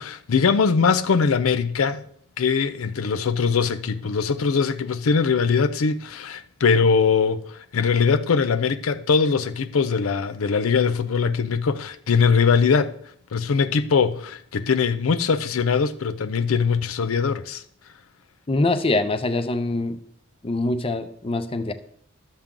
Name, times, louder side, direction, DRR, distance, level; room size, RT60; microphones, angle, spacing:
voice 1, 0.0-2.0 2.4-12.9 13.3-17.6, left 5 dB, 90° left, 0.5 m, -21 dB
voice 2, 18.5-20.0 20.4-21.7, left 2 dB, 25° left, 0.6 m, -24 dB
12.0 x 7.3 x 3.7 m
head